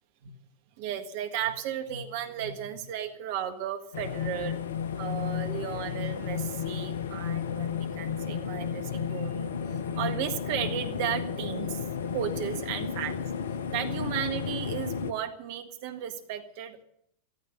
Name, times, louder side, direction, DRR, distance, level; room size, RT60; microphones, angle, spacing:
voice 1, 0.8-4.6 5.0-11.9 12.1-13.1 13.7-16.8, right 9 dB, 50° right, 7 dB, 1.6 m, -34 dB
sound 1, 3.9-15.1, left 7 dB, 60° left, 1.0 m, -33 dB
14.5 x 13.5 x 6.6 m, 0.71 s
figure-of-eight pair, 90°, 0 cm